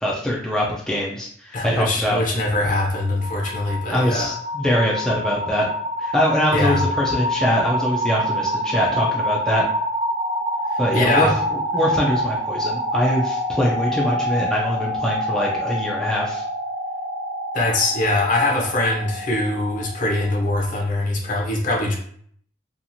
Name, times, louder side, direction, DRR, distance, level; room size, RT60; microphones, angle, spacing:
voice 1, 0.0-2.2 3.9-5.7 6.0-9.7 10.8-11.3 11.7-16.4, equal, 5° left, -4 dB, 0.3 m, -23 dB
voice 2, 1.5-4.3 6.5-6.8 10.7-11.4 17.5-22.0, left 2 dB, 40° left, 0 dB, 0.6 m, -22 dB
sound 1, 2.9-20.7, equal, 35° right, 0.6 m, -26 dB
2.8 x 2.4 x 2.6 m, 0.62 s
head